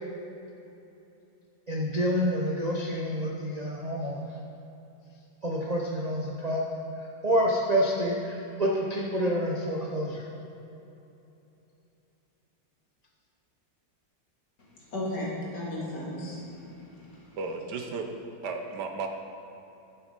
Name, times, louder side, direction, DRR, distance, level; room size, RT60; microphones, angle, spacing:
voice 1, 1.7-4.3 5.4-6.8 7.2-10.3, equal, 40° right, -2 dB, 0.6 m, -28 dB
voice 2, 14.9-17.4, left 1 dB, 65° left, -5 dB, 2.9 m, -35 dB
voice 3, 17.4-18.1 18.4-19.1, right 4 dB, 70° right, 4 dB, 1.4 m, -34 dB
10.0 x 7.4 x 5.2 m, 2.9 s
omnidirectional pair, 2.0 m